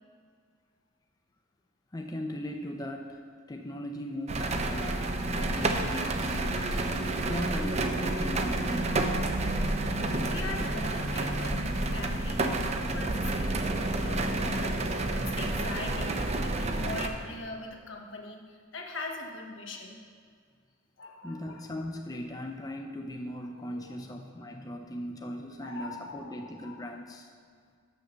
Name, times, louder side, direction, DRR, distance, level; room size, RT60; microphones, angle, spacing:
voice 1, 1.9-3.2 3.5-6.9 7.3-9.1 21.2-27.3, left 1 dB, 20° left, 3 dB, 0.5 m, -39 dB
sound 1, 4.3-17.1, right 2 dB, 35° right, 0.6 m, -29 dB
voice 2, 7.3-8.0 10.2-12.5 12.9-14.8 15.1-20.0 21.0-21.6 23.7-24.1 25.6-26.8, left 2 dB, 80° left, 2 dB, 1.2 m, -42 dB
6.5 x 6.5 x 6.9 m, 2.1 s
head